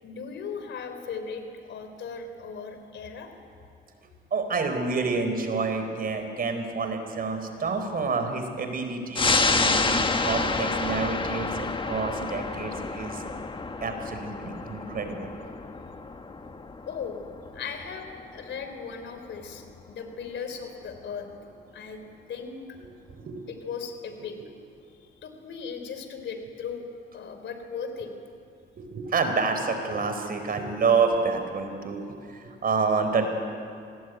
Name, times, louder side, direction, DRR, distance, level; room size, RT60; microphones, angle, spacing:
voice 1, 0.0-3.3 16.9-17.3 17.5-21.3 21.7-22.0 22.3-22.8 23.5-24.4 25.2-26.9 27.1-28.2, left 6 dB, 65° left, 7 dB, 3.5 m, -37 dB
voice 2, 4.3-13.2 13.8-15.3 23.1-23.5 28.8-32.0 32.3-33.3, right 4 dB, 50° right, 6 dB, 4.3 m, -28 dB
sound 1, 9.1-20.1 20.5-20.6, left 3 dB, 25° left, 1.5 m, -29 dB
26.0 x 20.0 x 9.4 m, 2.4 s
cardioid pair, 90°, 20 cm